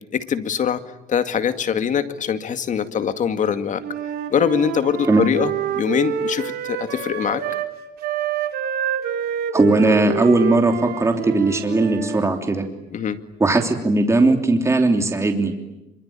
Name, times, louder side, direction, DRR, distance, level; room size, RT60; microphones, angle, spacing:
voice 1, 0.1-0.8 1.1-3.8 4.3-7.4 12.9-13.2, left 8 dB, 50° left, 10 dB, 2.1 m, -23 dB
Wind instrument woodwind instrument, 3.8-7.7 8.0-12.2, right 9 dB, 70° right, 3.5 m, -27 dB
voice 2, 9.5-12.6 13.4-15.5, right 2 dB, 15° right, 4 dB, 3.2 m, -18 dB
26.0 x 24.5 x 8.8 m, 0.95 s
cardioid pair, 110°, 17 cm